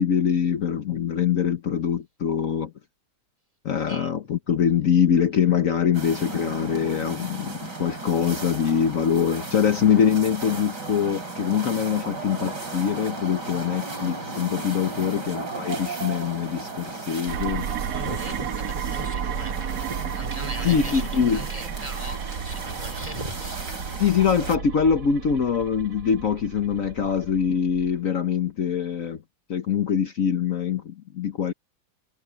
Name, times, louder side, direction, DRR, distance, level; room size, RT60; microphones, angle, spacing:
voice 1, 0.0-2.7 3.6-17.7 20.6-21.4 24.0-29.2 29.5-31.5, left 7 dB, 55° left, 1.3 m, -23 dB
sound 1, 5.9-24.6, right 3 dB, 85° right, 5.6 m, -35 dB
sound 2, 17.3-28.0, right 7 dB, 65° right, 1.6 m, -33 dB
voice 2, 17.9-23.9 27.0-27.1, right 1 dB, 20° right, 3.5 m, -39 dB
omnidirectional pair, 1.8 m